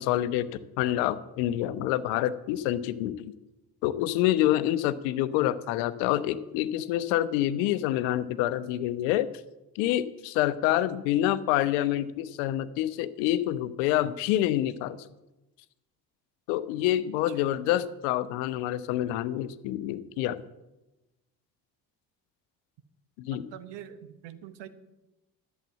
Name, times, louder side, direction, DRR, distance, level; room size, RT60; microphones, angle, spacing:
voice 1, 0.0-3.3 3.8-9.3 9.8-15.1 16.5-20.4 23.2-23.5, left 13 dB, 65° left, 15 dB, 0.8 m, -27 dB
voice 2, 23.3-24.7, right 10 dB, 60° right, 12 dB, 1.1 m, -44 dB
11.5 x 7.5 x 7.4 m, 1.0 s
figure-of-eight pair, 45°, 49 cm